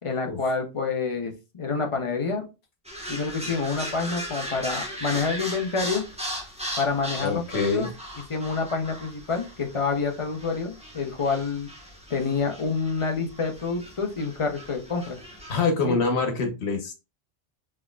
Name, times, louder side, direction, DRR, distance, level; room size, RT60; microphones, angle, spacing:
voice 1, 0.0-2.5 3.1-6.0 6.8-7.9 8.3-11.7 12.1-15.2 15.9-16.0, left 4 dB, 35° left, 4 dB, 0.7 m, -28 dB
sound 1, 2.8-15.6, equal, 5° right, 1.1 m, -38 dB
voice 2, 7.2-7.9 15.5-16.9, left 4 dB, 85° left, 5 dB, 1.3 m, -25 dB
4.5 x 3.5 x 2.3 m, 0.28 s
omnidirectional pair, 1.1 m